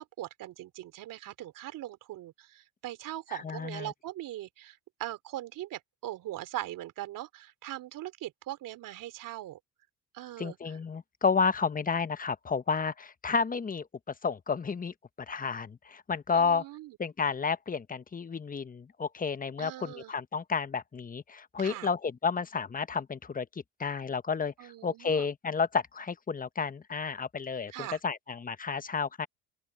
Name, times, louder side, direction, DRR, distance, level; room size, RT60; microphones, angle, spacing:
voice 1, 0.0-9.6 10.1-10.8 16.3-17.0 19.6-20.1 21.6-21.9 24.6-25.3 27.7-28.0, right 14 dB, 60° right, 3.3 m, -41 dB
voice 2, 3.3-3.9 10.4-13.9 14.2-14.9 15.3-16.6 17.0-23.5 23.8-29.3, left 5 dB, 25° left, 1.2 m, -31 dB
open air
supercardioid pair, 75°, 36 cm